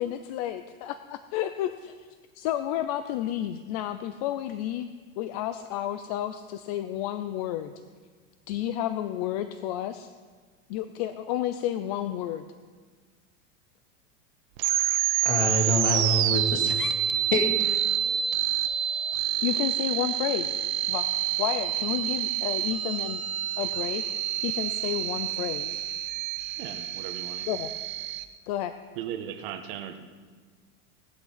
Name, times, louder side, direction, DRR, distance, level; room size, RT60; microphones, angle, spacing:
voice 1, 0.0-2.1 2.4-7.7 8.5-10.1 10.7-12.4 19.4-20.6 20.9-21.1 21.4-23.2 23.6-24.0 24.4-25.8 27.5-27.7 28.5-28.7, left 12 dB, 30° left, 10 dB, 0.4 m, -31 dB
sound 1, 14.6-28.2, right 11 dB, 75° right, 1.3 m, -28 dB
voice 2, 15.2-16.9 17.3-17.8, left 1 dB, 60° left, 4 dB, 2.5 m, -26 dB
voice 3, 26.6-27.5 28.9-30.0, right 9 dB, 45° right, 7 dB, 1.4 m, -37 dB
18.0 x 11.5 x 5.6 m, 1.5 s
supercardioid pair, 170°, 40 cm